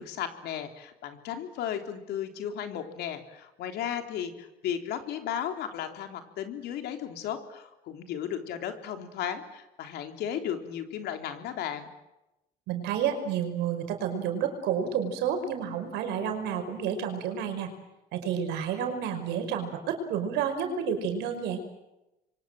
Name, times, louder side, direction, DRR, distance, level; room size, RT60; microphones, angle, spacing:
voice 1, 0.0-11.9, left 9 dB, 80° left, 6 dB, 3.5 m, -35 dB
voice 2, 12.7-17.7 18.1-21.6, right 8 dB, 85° right, 6 dB, 5.4 m, -30 dB
28.0 x 24.0 x 7.7 m, 0.93 s
cardioid pair, 110°, 17 cm